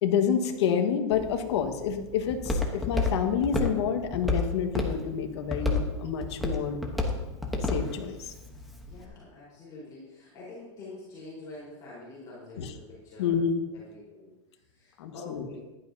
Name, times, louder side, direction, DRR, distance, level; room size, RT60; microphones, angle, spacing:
voice 1, 0.0-6.8 7.6-8.3 12.6-12.7 13.2-13.6 15.0-15.5, left 7 dB, 65° left, 5 dB, 1.6 m, -28 dB
Walk footsteps, 1.1-9.0, left 2 dB, ahead, 1.0 m, -32 dB
voice 2, 8.8-13.4 13.7-14.3 14.7-15.6, left 2 dB, 25° left, -8 dB, 4.3 m, -46 dB
15.5 x 11.5 x 2.8 m, 1.0 s
supercardioid pair, 170°, 16 cm